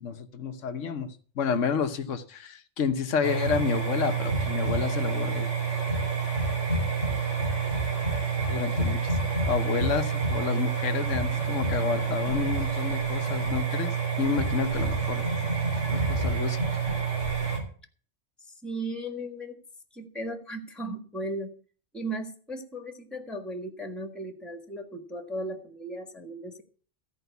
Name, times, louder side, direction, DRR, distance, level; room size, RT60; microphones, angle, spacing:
voice 1, 0.0-5.5 8.5-9.2 9.4-15.3 15.9-16.6, left 6 dB, 85° left, 8 dB, 1.4 m, -30 dB
sound 1, 3.2-17.6, right 5 dB, 70° right, 3.9 m, -28 dB
voice 2, 18.6-19.6 19.9-21.5 21.9-26.6, right 1 dB, ahead, 6 dB, 1.6 m, -36 dB
14.5 x 5.2 x 8.2 m, 0.42 s
omnidirectional pair, 1.3 m